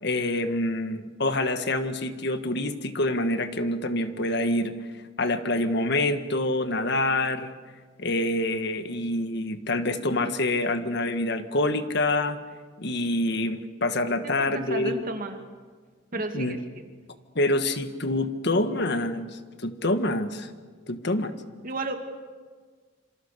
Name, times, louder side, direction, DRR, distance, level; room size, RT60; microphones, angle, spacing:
voice 1, 0.0-4.7 5.2-7.5 8.0-12.4 12.8-15.0 16.3-16.5 17.3-19.3 19.6-20.5 20.9-21.3, left 2 dB, 60° left, 9 dB, 1.6 m, -26 dB
voice 2, 14.2-15.4 16.1-16.6 21.6-22.0, right 2 dB, 45° right, 5 dB, 2.6 m, -32 dB
27.0 x 27.0 x 6.8 m, 1.5 s
head